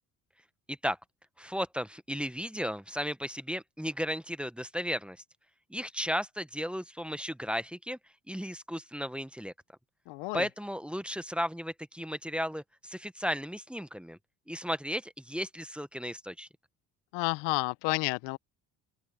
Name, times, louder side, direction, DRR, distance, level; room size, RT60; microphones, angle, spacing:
voice 1, 1.4-5.2 5.7-8.0 8.3-9.5 10.3-14.2 14.5-16.5, equal, 5° right, 1.2 m, -35 dB
voice 2, 10.1-10.4 17.1-18.4, left 25 dB, 80° left, 1.0 m, -30 dB
open air
supercardioid pair, 70°, 42 cm